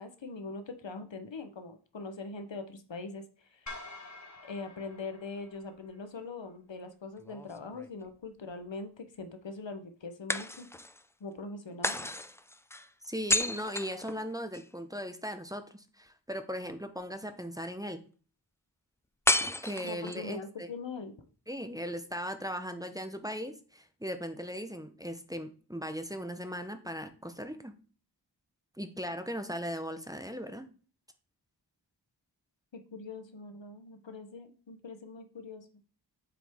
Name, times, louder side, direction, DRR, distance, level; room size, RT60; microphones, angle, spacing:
voice 1, 0.0-3.2 3.5-3.7 4.4-10.7 11.2-12.1 19.8-21.1 32.7-35.7, left 3 dB, 85° left, 8 dB, 0.9 m, -42 dB
sound 1, 3.7-6.0, left 2 dB, 40° left, 1.4 m, -47 dB
sound 2, 7.2-8.3 10.3-11.1 11.8-14.7 19.3-20.3, left 1 dB, 5° left, 0.3 m, -32 dB
voice 2, 13.1-18.0 19.6-20.7 21.5-27.7 28.8-30.7, equal, 10° right, 7 dB, 0.7 m, -38 dB
7.3 x 4.6 x 3.5 m, 0.39 s
wide cardioid pair, 55°, 43 cm